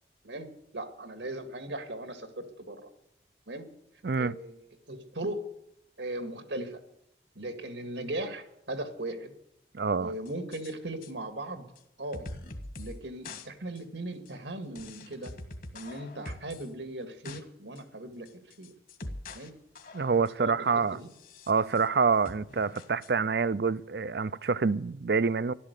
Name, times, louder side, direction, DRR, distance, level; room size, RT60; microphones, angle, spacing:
voice 1, 0.2-2.9 3.5-3.7 4.2-5.4 6.0-6.8 7.4-9.3 10.0-11.7 12.0-12.3 12.8-15.3 15.7-18.7 19.3-19.5 20.4-21.1, right 1 dB, 85° right, 2.1 m, -38 dB
voice 2, 4.0-4.3 9.7-10.1 19.9-21.0 21.5-25.5, right 5 dB, 60° right, 0.5 m, -27 dB
sound 1, 10.3-10.7 11.0-11.1 11.8-11.9 12.1-13.0 13.2-13.5 13.8-13.9 14.3-14.4 14.8-16.7 17.0-17.4 17.8-17.9 18.3-19.5 19.8-20.4 21.0-21.9 22.3-23.1, left 2 dB, 50° left, 1.6 m, -43 dB
14.0 x 12.0 x 8.2 m
head